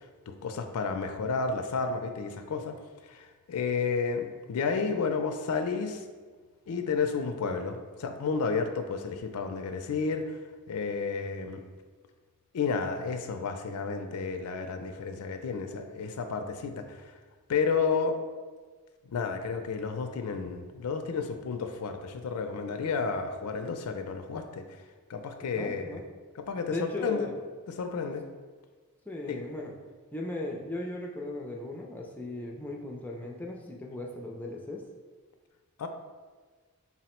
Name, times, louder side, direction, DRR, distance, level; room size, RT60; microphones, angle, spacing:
voice 1, 0.3-2.8 3.1-6.0 6.7-10.4 10.7-11.6 12.5-16.8 17.5-18.2 19.1-24.6 25.1-26.0 26.4-27.3 27.8-28.2 29.3-29.4 35.8-35.9, left 5 dB, 85° left, 7 dB, 0.4 m, -31 dB
voice 2, 25.4-26.0 26.7-27.4 29.1-29.7 30.1-34.8, left 2 dB, 10° left, -1 dB, 0.3 m, -37 dB
4.1 x 2.0 x 4.3 m, 1.4 s
head